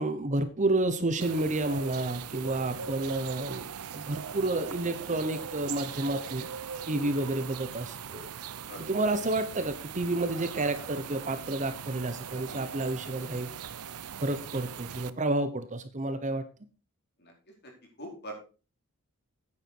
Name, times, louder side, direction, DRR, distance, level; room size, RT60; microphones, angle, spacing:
voice 1, 0.0-3.7 3.9-6.5 6.9-8.3 8.9-13.5 14.2-16.4, right 2 dB, 35° right, 11 dB, 0.9 m, -30 dB
sound 1, 1.2-15.1, right 7 dB, 90° right, 0.7 m, -40 dB
voice 2, 17.2-17.7 18.0-18.3, equal, 50° left, 0 dB, 4.4 m, -45 dB
10.0 x 8.9 x 4.6 m, 0.35 s
head